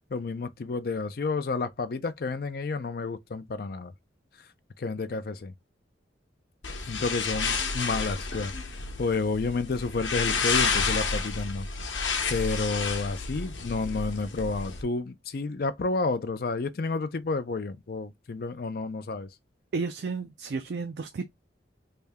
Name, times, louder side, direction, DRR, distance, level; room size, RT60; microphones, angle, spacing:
voice 1, 0.1-3.9 4.8-5.5 6.8-8.5 9.0-11.7 12.3-19.3, left 3 dB, 55° left, 0.4 m, -30 dB
sound 1, 6.6-14.8, left 4 dB, 85° left, 0.9 m, -30 dB
voice 2, 19.7-21.3, right 4 dB, 60° right, 0.4 m, -32 dB
3.3 x 2.7 x 3.4 m
head